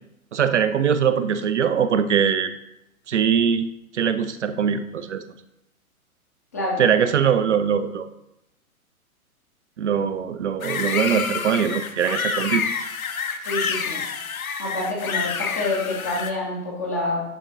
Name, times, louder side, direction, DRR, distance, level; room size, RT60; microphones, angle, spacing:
voice 1, 0.3-2.5 3.1-3.7 3.9-5.2 6.8-8.1 9.8-12.7, right 7 dB, 55° right, 10 dB, 0.5 m, -22 dB
sound 1, 10.6-16.3, left 6 dB, 75° left, 0.7 m, -28 dB
voice 2, 13.5-14.0 14.6-17.2, left 2 dB, 15° left, -3 dB, 0.4 m, -27 dB
10.5 x 3.6 x 2.6 m, 0.86 s
figure-of-eight pair, 115°, 43 cm